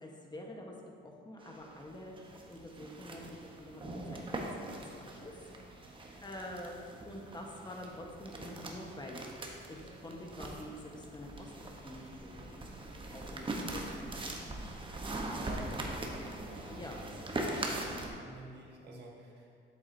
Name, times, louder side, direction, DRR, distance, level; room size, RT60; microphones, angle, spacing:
voice 1, 0.0-2.1 2.5-5.5 6.2-6.7 7.0-9.3 9.7-12.8 13.1-14.2 15.3-15.5 15.8-16.0 16.7-17.0, left 1 dB, 20° left, 0 dB, 1.1 m, -47 dB
sound 1, 1.4-18.1, right 2 dB, 25° right, 0.9 m, -42 dB
voice 2, 15.4-15.8 17.3-19.5, right 2 dB, 55° right, -2 dB, 1.4 m, -50 dB
7.8 x 7.1 x 2.7 m, 2.3 s
cardioid pair, 90°, 20 cm